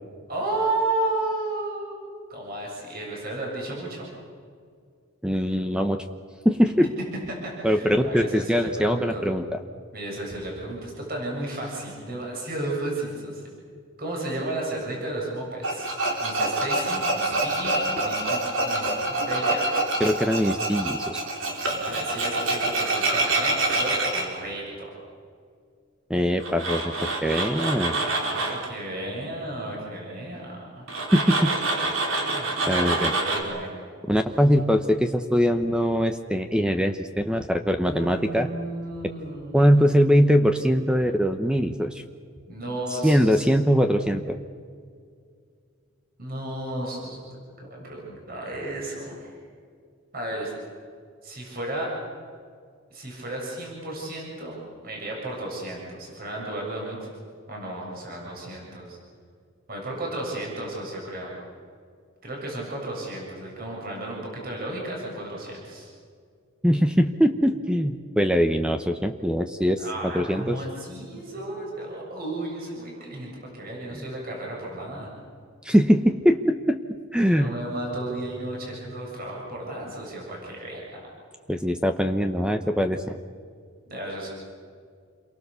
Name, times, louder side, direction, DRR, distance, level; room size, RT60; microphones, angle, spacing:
voice 1, 0.3-2.0 2.3-4.1 7.3-9.2 9.9-13.4 14.0-15.9 16.2-19.7 21.7-24.9 28.0-30.9 32.1-33.7 37.8-39.9 42.5-43.5 46.2-47.2 47.6-49.4 50.1-50.5 51.2-51.9 52.9-57.1 57.5-59.0 59.7-61.3 62.2-65.9 69.8-75.1 77.3-81.0 83.9-84.3, right 1 dB, 45° right, -2 dB, 7.4 m, -33 dB
voice 2, 5.2-6.0 6.4-6.9 7.6-9.6 20.0-21.2 26.1-26.9 27.2-28.0 31.1-31.5 31.8-31.9 32.7-33.1 34.1-38.5 39.5-42.0 43.0-44.4 66.6-70.6 73.9-74.0 75.6-76.8 77.1-77.5 81.5-83.2, equal, 5° right, 7 dB, 0.9 m, -22 dB
Tools, 15.6-24.2 26.4-28.7 30.9-33.4, right 2 dB, 65° right, 4.5 m, -26 dB
28.5 x 23.0 x 6.9 m, 2.2 s
head